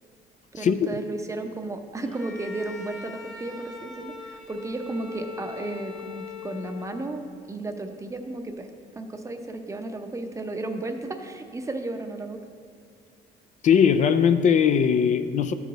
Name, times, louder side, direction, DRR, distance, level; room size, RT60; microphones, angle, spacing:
voice 1, 0.5-8.7 9.0-12.4, right 2 dB, 20° right, 6 dB, 0.7 m, -34 dB
Bowed string instrument, 2.0-7.3, left 4 dB, 5° left, 1.0 m, -41 dB
voice 2, 13.6-15.5, left 7 dB, 45° left, 9 dB, 0.4 m, -20 dB
12.5 x 4.7 x 3.9 m, 2.4 s
cardioid pair, 110°, 17 cm